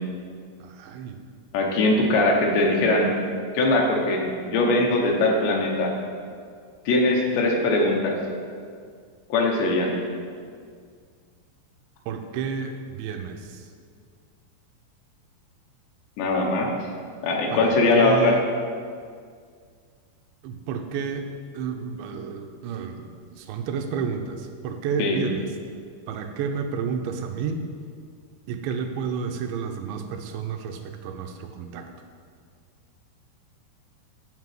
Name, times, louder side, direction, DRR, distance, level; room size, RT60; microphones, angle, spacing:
voice 1, 0.6-1.2 12.1-13.7 17.5-18.4 20.4-21.3 21.5-25.5 26.1-27.7 28.5-31.9, right 6 dB, 80° right, 5 dB, 2.8 m, -31 dB
voice 2, 1.5-3.1 3.5-5.9 6.9-8.2 9.3-9.9 16.2-16.7 17.2-18.4 25.0-25.2, left 2 dB, 75° left, 0 dB, 3.2 m, -21 dB
9.5 x 5.2 x 7.6 m, 2.1 s
omnidirectional pair, 5.2 m